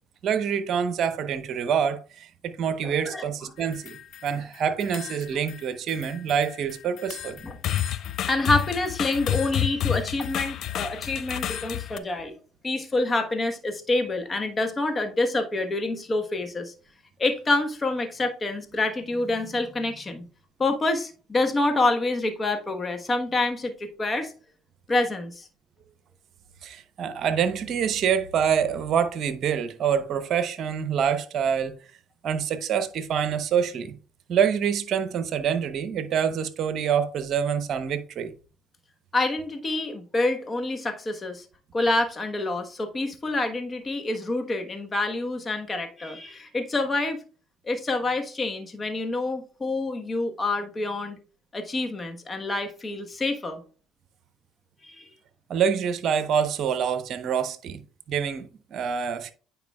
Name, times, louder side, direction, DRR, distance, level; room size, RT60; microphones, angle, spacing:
voice 1, 0.2-7.4 26.6-31.7 32.2-34.0 34.3-38.3 55.5-57.8 58.1-59.3, right 7 dB, 55° right, 0.8 m, -26 dB
voice 2, 2.8-3.5 7.4-7.6 8.3-12.3 12.6-16.7 17.2-20.3 20.6-24.3 24.9-25.5 39.1-41.4 41.7-47.2 47.6-51.2 51.5-53.6 54.8-55.1, left 2 dB, 25° left, 1.2 m, -27 dB
sound 1, 3.6-4.4 4.8-5.6 5.9-12.0, left 11 dB, 60° left, 0.4 m, -30 dB
9.2 x 4.8 x 2.3 m
supercardioid pair, 75°, 0 cm